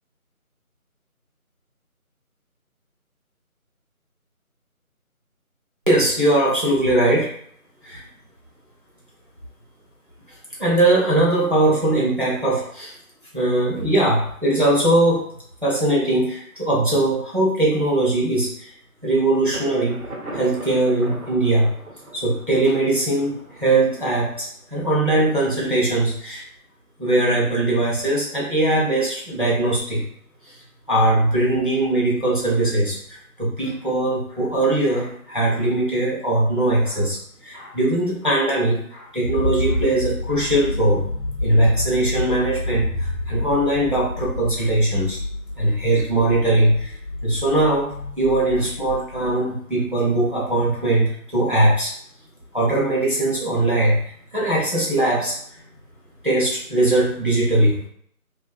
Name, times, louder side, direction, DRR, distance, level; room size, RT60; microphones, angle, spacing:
voice 1, 5.9-7.3 7.8-8.0 10.6-13.0 13.3-15.3 15.6-18.7 19.0-20.0 20.3-21.7 22.1-26.4 27.0-30.0 30.5-30.6 30.9-41.0 41.4-45.2 45.6-46.9 47.2-51.9 52.5-54.0 54.3-55.4 56.2-57.8, right 1 dB, 35° right, -5 dB, 0.6 m, -20 dB
Thunder, 19.5-25.2, right 1 dB, 90° right, 0.9 m, -39 dB
sound 1, 39.2-49.3, left 1 dB, 55° left, 0.5 m, -29 dB
2.5 x 2.3 x 2.2 m, 0.64 s
figure-of-eight pair, 170°, 44 cm